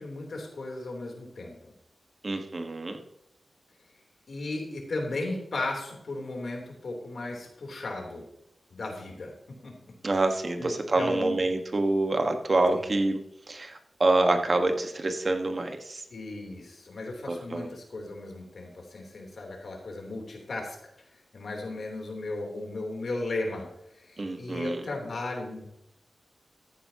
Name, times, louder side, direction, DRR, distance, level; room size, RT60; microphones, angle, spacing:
voice 1, 0.0-1.7 4.3-8.2 8.7-9.3 9.6-9.7 10.1-10.2 10.6-11.4 12.7-12.9 16.1-20.8 21.1-25.7, left 2 dB, 70° left, 0 dB, 3.4 m, -36 dB
voice 2, 2.2-3.0 10.0-13.2 13.5-16.0 17.3-17.7 24.2-24.8, right 2 dB, 45° right, 6 dB, 1.4 m, -26 dB
14.0 x 9.4 x 2.9 m, 0.80 s
cardioid pair, 65°, 0 cm